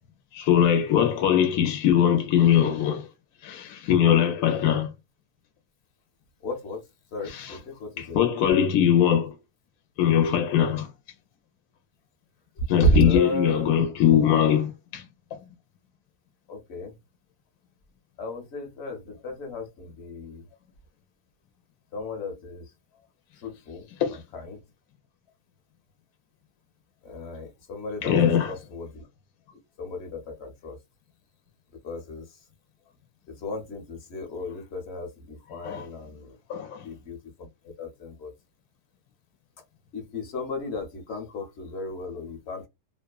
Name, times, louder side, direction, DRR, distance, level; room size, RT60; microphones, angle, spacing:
voice 1, 0.3-3.1 3.4-4.9 7.3-7.6 8.0-9.3 10.0-10.9 12.7-15.0 24.0-24.2 28.0-28.5 35.6-35.9 36.5-36.9, left 9 dB, 70° left, 1.0 m, -21 dB
voice 2, 6.4-6.8 7.1-8.2 12.6-13.7 16.5-16.9 18.2-20.5 21.9-22.7 23.4-24.6 27.0-28.2 28.5-29.0 29.8-30.8 31.8-32.2 33.3-36.3 36.8-38.3 39.9-42.7, right 1 dB, 50° left, 0.9 m, -32 dB
2.9 x 2.1 x 2.3 m
omnidirectional pair, 1.8 m